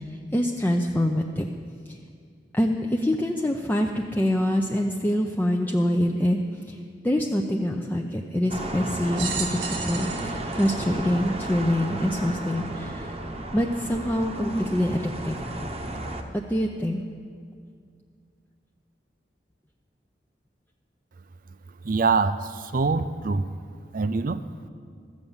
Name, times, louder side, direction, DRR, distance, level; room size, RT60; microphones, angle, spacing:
voice 1, 0.3-1.5 1.9-2.0 2.5-6.4 6.7-6.8 7.0-13.1 13.5-15.0 15.2-15.4 16.3-17.0, left 1 dB, 10° left, 1 dB, 0.5 m, -25 dB
sound 1, 8.5-16.2, right 1 dB, 35° right, 0.9 m, -33 dB
sound 2, 9.1-11.8 12.5-12.6 13.7-13.8, right 6 dB, 85° right, 1.5 m, -34 dB
voice 2, 21.8-23.4 23.9-24.4, right 4 dB, 55° right, 13 dB, 0.5 m, -24 dB
13.5 x 7.9 x 7.2 m, 2.2 s
head